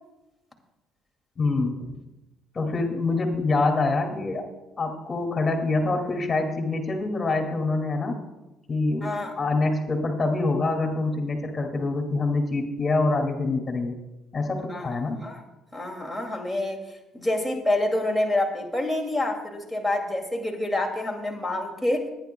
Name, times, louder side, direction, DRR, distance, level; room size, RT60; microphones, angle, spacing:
voice 1, 1.4-2.0 2.5-4.5 4.8-8.2 8.7-9.1 9.4-13.9 14.3-15.2, left 3 dB, 35° left, 3 dB, 2.3 m, -25 dB
voice 2, 9.0-9.4 14.7-15.4 15.7-16.8 17.1-22.0, left 1 dB, 5° right, 3 dB, 2.4 m, -27 dB
26.0 x 9.9 x 2.3 m, 0.99 s
supercardioid pair, 70°, 0 cm